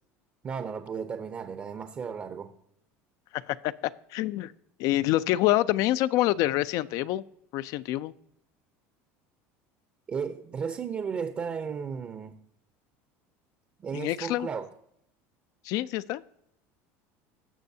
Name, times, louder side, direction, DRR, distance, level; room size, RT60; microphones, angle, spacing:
voice 1, 0.4-2.5 10.1-12.3 13.8-14.7, right 6 dB, 30° right, 9 dB, 0.6 m, -34 dB
voice 2, 3.3-3.7 4.1-4.5 4.8-7.2 7.5-8.1 13.9-14.5 15.6-16.2, left 15 dB, 60° left, 16 dB, 0.4 m, -26 dB
18.0 x 6.3 x 2.7 m, 0.76 s
supercardioid pair, 125°, 7 cm